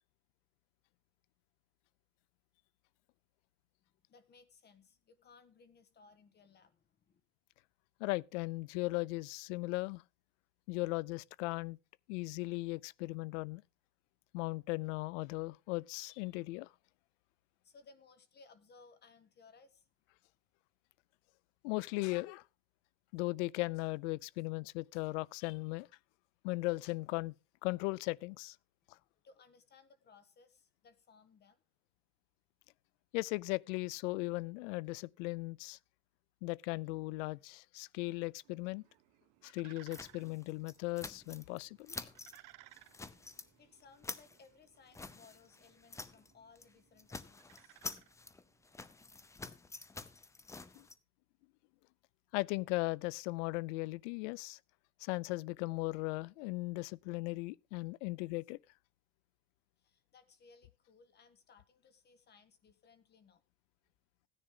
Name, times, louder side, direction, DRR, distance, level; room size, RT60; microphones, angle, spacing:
voice 1, 4.1-7.2 17.6-19.9 28.8-31.6 43.6-47.8 59.8-63.4, left 4 dB, 30° left, 1.5 m, -62 dB
voice 2, 8.0-10.0 10.7-11.8 12.1-13.6 14.3-16.7 21.6-22.4 23.1-25.9 26.4-27.3 27.6-28.6 28.9-29.0 33.1-35.8 36.4-38.8 39.4-42.1 50.8-50.9 52.3-54.6 55.0-58.6, left 23 dB, 80° left, 0.6 m, -37 dB
sound 1, 38.4-48.8, right 17 dB, 65° right, 1.1 m, -63 dB
sound 2, 39.9-41.6 41.9-42.4 42.7-43.5 43.8-46.3 46.6-46.7 47.0-50.9, left 3 dB, 10° left, 0.6 m, -48 dB
16.0 x 10.0 x 3.7 m
cardioid pair, 140°, 35 cm